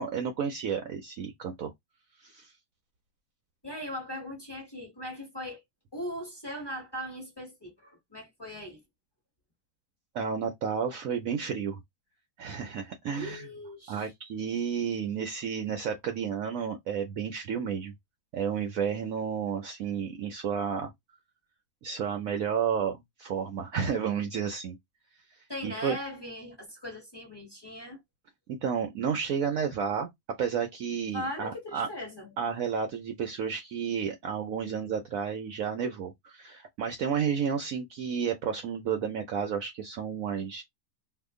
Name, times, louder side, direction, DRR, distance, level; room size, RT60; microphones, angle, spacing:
voice 1, 0.0-1.7 2.2-2.5 10.1-11.8 12.4-13.5 13.9-17.9 18.3-20.9 21.8-24.8 25.6-26.0 28.5-31.9 32.4-40.6, right 7 dB, 65° right, 0.9 m, -31 dB
voice 2, 3.6-5.6 5.9-8.8 13.1-14.1 25.5-28.0 31.1-32.3, left 1 dB, 15° left, 1.2 m, -39 dB
2.8 x 2.4 x 3.5 m
omnidirectional pair, 1.8 m